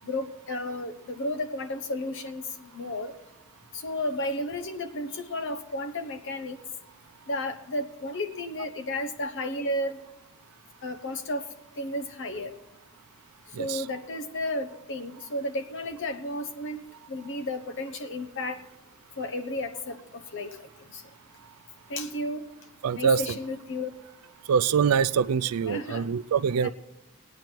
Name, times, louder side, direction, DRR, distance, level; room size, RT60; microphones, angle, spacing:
voice 1, 0.0-3.1 3.7-6.6 7.3-10.0 10.8-11.4 11.8-12.5 13.6-16.8 17.1-18.6 19.2-20.5 20.9-21.0 21.9-22.4 23.0-23.9 25.7-26.1 26.6-26.7, left 1 dB, 60° left, 8 dB, 1.0 m, -33 dB
voice 2, 22.8-23.2 24.5-26.7, right 6 dB, 90° right, 17 dB, 0.4 m, -24 dB
20.0 x 9.2 x 4.5 m, 0.93 s
head